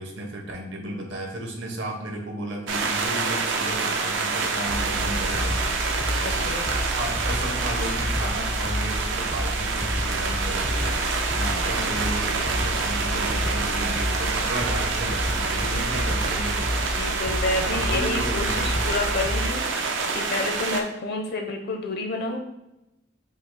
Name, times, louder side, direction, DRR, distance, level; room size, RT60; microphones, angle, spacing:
voice 1, 0.0-5.6 6.2-6.5 6.8-17.0 17.5-18.7, right 1 dB, 70° right, 1 dB, 0.9 m, -34 dB
sound 1, 2.7-20.8, right 4 dB, 85° right, 0.5 m, -27 dB
sound 2, 4.7-19.5, left 1 dB, 15° left, 0.4 m, -30 dB
voice 2, 6.2-6.6 11.7-11.9 15.5-15.8 16.8-22.4, left 2 dB, 55° left, 3 dB, 0.6 m, -30 dB
5.0 x 2.1 x 4.0 m, 0.90 s
head